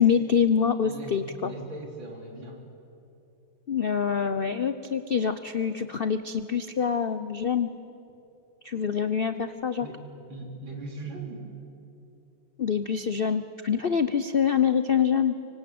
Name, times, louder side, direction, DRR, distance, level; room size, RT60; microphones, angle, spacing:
voice 1, 0.0-1.5 3.7-7.7 8.6-9.9 12.6-15.4, left 7 dB, 90° left, 11 dB, 0.5 m, -25 dB
voice 2, 0.8-2.6 9.8-10.0 10.3-11.4, right 2 dB, 75° right, 1 dB, 4.3 m, -39 dB
25.5 x 24.5 x 8.6 m, 2.8 s
omnidirectional pair, 2.1 m